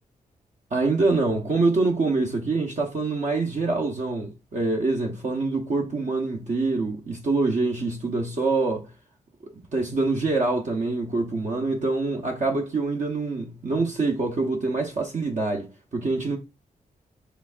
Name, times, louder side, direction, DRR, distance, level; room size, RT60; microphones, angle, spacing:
voice 1, 0.7-8.9 9.4-16.4, right 3 dB, 55° right, 0.9 m, -25 dB
5.1 x 3.5 x 2.4 m
cardioid pair, 70°, 15 cm